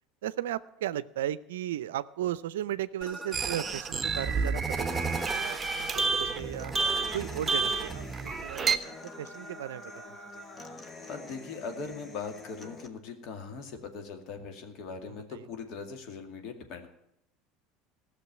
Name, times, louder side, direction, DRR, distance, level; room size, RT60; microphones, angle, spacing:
voice 1, 0.2-6.7 7.1-10.8 15.1-15.4, right 12 dB, 80° right, 18 dB, 0.5 m, -36 dB
sound 1, 3.0-8.6, right 3 dB, 5° right, 2.1 m, -41 dB
sound 2, 3.3-8.8, right 4 dB, 25° right, 0.9 m, -30 dB
Human voice / Acoustic guitar, 4.9-12.9, left 2 dB, 30° left, 1.4 m, -46 dB
voice 2, 10.6-16.9, left 5 dB, 60° left, 5 dB, 2.2 m, -40 dB
15.5 x 6.6 x 9.5 m, 0.80 s
hypercardioid pair, 80°, 0 cm